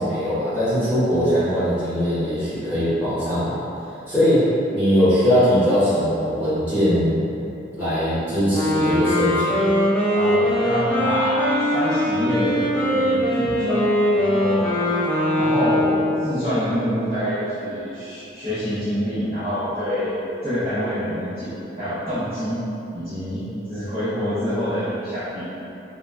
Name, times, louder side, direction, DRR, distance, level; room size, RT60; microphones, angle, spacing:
voice 1, 0.0-3.6 4.1-7.3 7.7-9.7, equal, 10° right, -16 dB, 1.4 m, -21 dB
Wind instrument woodwind instrument, 8.5-16.4, left 1 dB, 5° left, 0.5 m, -21 dB
voice 2, 10.1-14.8 15.4-20.2 20.4-22.6 22.9-25.4, equal, 35° right, -17 dB, 0.9 m, -26 dB
3.7 x 2.4 x 2.2 m, 2.8 s
head